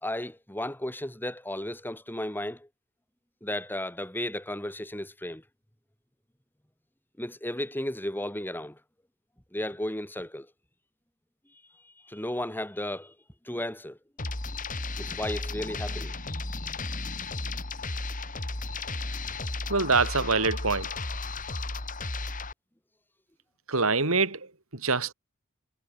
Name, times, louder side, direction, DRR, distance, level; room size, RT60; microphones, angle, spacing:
voice 1, 0.0-2.7 3.4-5.4 7.2-8.8 9.5-10.5 12.0-13.1 13.5-14.0 15.0-16.1, left 1 dB, 10° left, 4.1 m, -34 dB
sound 1, 14.2-22.5, left 3 dB, 40° left, 2.8 m, -34 dB
voice 2, 19.7-20.9 23.7-25.1, right 4 dB, 75° right, 3.6 m, -25 dB
head